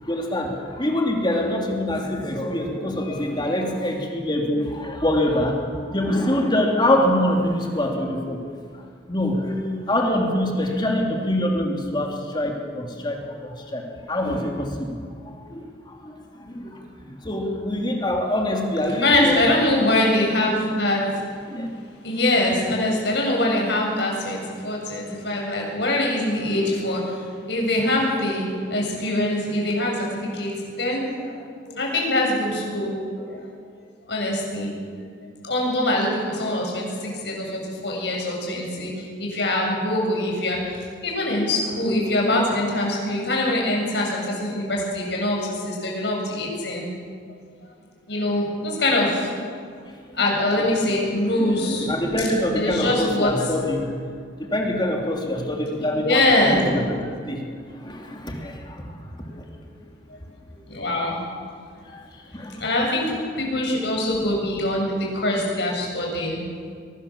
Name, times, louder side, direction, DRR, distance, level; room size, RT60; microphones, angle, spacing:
voice 1, 0.0-8.4 8.7-8.8 9.1-15.0 15.2-19.5 21.5-21.7 51.4-53.9 54.4-59.0 61.8-62.7, left 1 dB, 25° left, 1 dB, 3.0 m, -25 dB
voice 2, 19.0-21.2 22.0-33.4 34.1-34.7 35.4-46.9 48.1-49.4 50.2-51.9 52.2-52.3 52.6-53.3 56.0-56.6 59.3-59.4 60.1-60.2 60.5-61.2 62.6-63.1 63.4-66.4, left 1 dB, 65° left, -1 dB, 7.5 m, -23 dB
23.5 x 20.0 x 7.4 m, 2.1 s
head